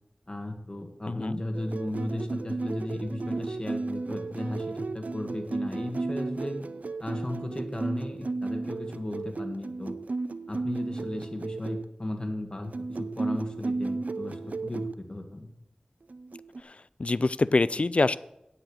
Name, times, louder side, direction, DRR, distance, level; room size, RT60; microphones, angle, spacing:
voice 1, 0.3-6.6 7.0-9.9 10.5-15.5, left 1 dB, 30° left, 4 dB, 1.7 m, -35 dB
voice 2, 1.1-1.4 16.6-18.2, left 3 dB, 55° left, 16 dB, 0.4 m, -25 dB
sound 1, 1.5-11.8 12.6-14.9 16.1-16.6, right 3 dB, 80° right, 0.4 m, -34 dB
8.8 x 8.0 x 6.3 m, 0.84 s
wide cardioid pair, 55°, 3 cm